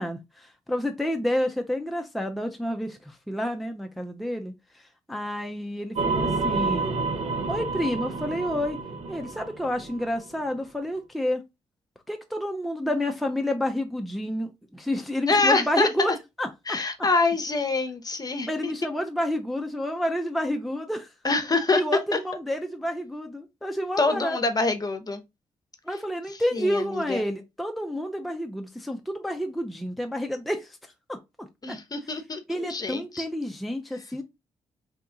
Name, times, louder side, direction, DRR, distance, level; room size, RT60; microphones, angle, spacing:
voice 1, 0.0-6.9 7.5-8.8 9.1-11.4 12.1-16.1 16.4-16.8 18.5-21.1 21.7-24.4 25.8-30.8 31.1-31.8 32.5-34.2, equal, ahead, 0.5 m, -29 dB
sound 1, 6.0-10.4, right 3 dB, 65° right, 0.7 m, -29 dB
voice 2, 15.3-15.9 16.7-18.7 21.2-21.8 22.1-22.2 24.0-25.2 26.5-27.2 31.6-33.2, left 3 dB, 35° left, 0.8 m, -25 dB
2.9 x 2.3 x 3.8 m
supercardioid pair, 50°, 12 cm